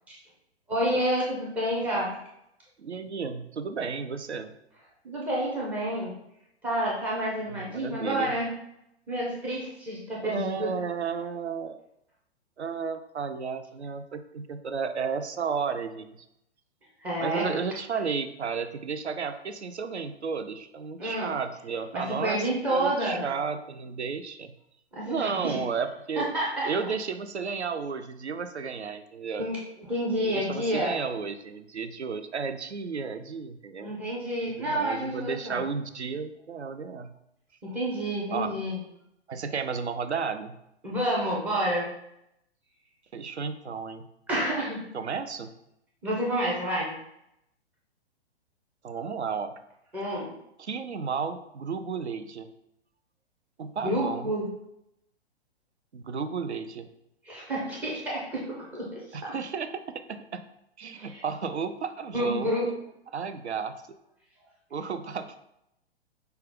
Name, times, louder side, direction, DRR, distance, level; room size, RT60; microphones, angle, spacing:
voice 1, 0.7-2.2 5.0-6.1 6.6-8.5 9.1-10.7 17.0-17.5 21.0-21.3 21.9-23.3 24.9-25.6 26.2-26.7 29.4-31.0 33.8-35.6 37.6-38.8 40.8-41.9 44.3-44.8 46.0-46.9 49.9-50.3 53.8-54.5 57.2-59.3 60.9-61.2 62.1-62.7, right 1 dB, 5° right, -4 dB, 0.4 m, -29 dB
voice 2, 2.8-4.5 7.5-8.3 10.2-11.8 12.6-16.2 17.2-22.4 22.7-24.5 25.0-26.3 26.6-29.5 30.2-33.9 34.6-37.1 38.3-38.5 39.3-40.6 43.1-44.1 44.9-45.5 48.8-49.5 50.6-52.5 53.6-54.3 55.9-56.9 59.1-59.8 60.1-60.4 60.8-62.5 63.1-63.8 64.7-65.4, right 5 dB, 80° right, 10 dB, 0.5 m, -33 dB
5.4 x 2.3 x 3.6 m, 0.81 s
figure-of-eight pair, 115°, 33 cm